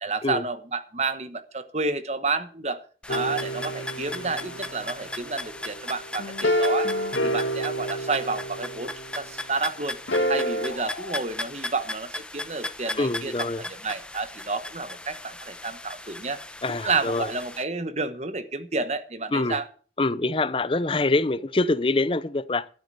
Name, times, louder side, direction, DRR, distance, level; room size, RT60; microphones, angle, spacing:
voice 1, 0.0-2.8 3.1-6.9 7.2-10.0 10.3-13.3 13.8-16.4 16.8-19.6, right 3 dB, 35° right, 1.2 m, -30 dB
sound 1, 3.0-17.6, left 1 dB, 5° left, 0.9 m, -37 dB
sound 2, 3.1-9.3 10.1-10.7, equal, 90° left, 2.3 m, -29 dB
sound 3, 10.7-11.2, left 2 dB, 70° left, 2.7 m, -39 dB
voice 2, 13.0-13.6 16.6-17.3 19.3-19.6 20.0-22.7, left 2 dB, 30° left, 0.6 m, -25 dB
12.5 x 8.2 x 6.8 m
head